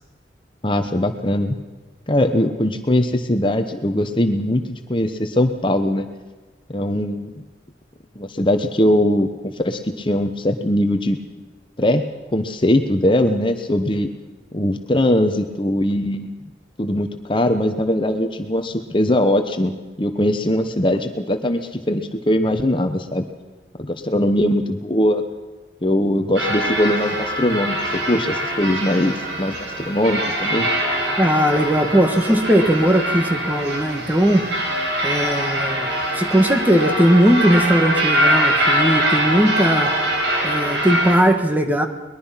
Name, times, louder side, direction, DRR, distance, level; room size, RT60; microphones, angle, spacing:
voice 1, 0.6-1.5 2.1-6.1 6.7-7.3 8.2-11.2 11.8-12.0 12.3-14.1 14.5-16.3 16.8-19.7 20.0-23.3 23.8-25.2 25.8-30.7, left 1 dB, 30° left, 7 dB, 1.1 m, -20 dB
sound 1, 26.4-41.2, right 1 dB, 85° right, 5.4 m, -23 dB
voice 2, 31.2-34.4 35.0-35.9 36.1-39.9 40.4-41.9, equal, 10° right, 6 dB, 1.5 m, -18 dB
23.0 x 21.0 x 5.8 m, 1.2 s
head